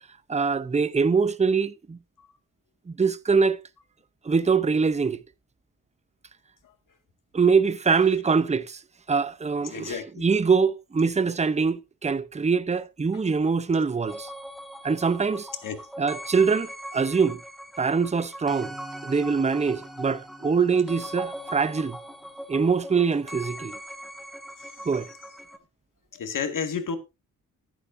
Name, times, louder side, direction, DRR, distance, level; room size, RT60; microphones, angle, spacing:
voice 1, 0.3-2.0 2.9-3.6 4.2-5.2 7.3-8.8 9.1-14.3 14.8-15.5 16.0-17.4 17.8-18.7 19.0-22.0 22.5-23.8 24.8-25.1, right 5 dB, 20° right, 0.7 m, -23 dB
voice 2, 9.6-10.3 13.1-13.2 15.6-15.8 24.6-25.2 26.1-27.0, left 6 dB, 70° left, 2.1 m, -33 dB
sound 1, 14.1-25.6, equal, ahead, 1.7 m, -41 dB
13.5 x 11.0 x 2.6 m
cardioid pair, 90°, 33 cm